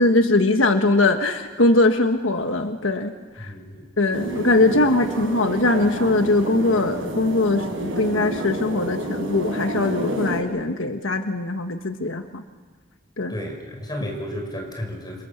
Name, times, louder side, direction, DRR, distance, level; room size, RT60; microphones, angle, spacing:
voice 1, 0.0-3.1 3.4-3.5 4.0-12.4 13.2-13.3, left 2 dB, 85° left, 6 dB, 1.5 m, -21 dB
voice 2, 3.4-3.8 13.3-15.2, equal, 20° left, 3 dB, 6.2 m, -32 dB
sound 1, 4.1-10.4, equal, 80° right, 6.0 m, -29 dB
29.5 x 27.0 x 7.3 m, 1.4 s
head